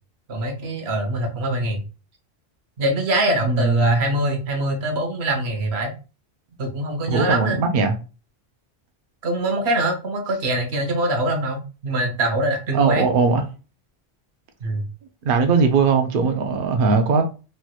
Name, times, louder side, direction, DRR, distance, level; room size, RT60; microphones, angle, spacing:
voice 1, 0.3-1.8 2.8-5.9 6.6-7.6 9.2-13.1 14.6-14.8, right 1 dB, 85° right, 1.1 m, -23 dB
voice 2, 3.4-4.1 7.1-8.0 12.7-13.4 15.2-17.2, right 4 dB, 65° right, 0.7 m, -19 dB
3.2 x 2.9 x 2.3 m
omnidirectional pair, 1.1 m